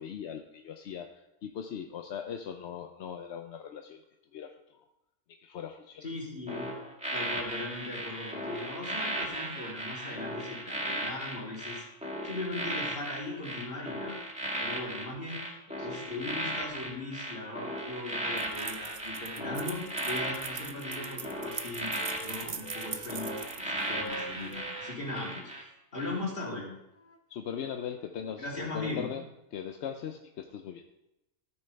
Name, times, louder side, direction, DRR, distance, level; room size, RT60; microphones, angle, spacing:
voice 1, 0.0-4.0 4.3-4.8 5.3-6.1 15.8-16.2 27.3-29.2 29.5-30.8, left 8 dB, 60° left, 5 dB, 0.8 m, -40 dB
voice 2, 6.0-6.7 7.1-11.8 12.2-14.2 14.6-15.4 15.8-21.9 22.2-26.7 28.4-29.1, left 2 dB, 40° left, -4 dB, 3.3 m, -39 dB
sound 1, 6.5-25.6 26.0-26.2, right 1 dB, 5° right, 2.2 m, -36 dB
sound 2, 18.4-24.6, right 6 dB, 45° right, 0.7 m, -42 dB
Wind instrument woodwind instrument, 19.7-20.1 20.4-23.5 23.9-25.3 25.9-28.4, right 1 dB, 10° left, 0.8 m, -48 dB
14.0 x 8.6 x 3.3 m, 0.89 s
omnidirectional pair, 1.5 m